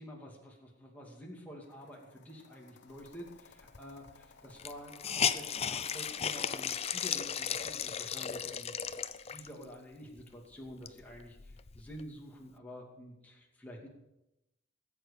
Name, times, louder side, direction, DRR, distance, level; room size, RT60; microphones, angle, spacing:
voice 1, 0.0-8.8 9.3-13.9, equal, 10° left, -2 dB, 2.5 m, -49 dB
sound 1, 1.6-6.7, left 4 dB, 65° left, 1.0 m, -59 dB
Hiss, 3.7-3.8 4.1-4.2 4.6-9.6 10.2-10.3 10.7-12.0, left 8 dB, 30° left, 0.5 m, -35 dB
19.5 x 8.1 x 6.6 m, 0.91 s
head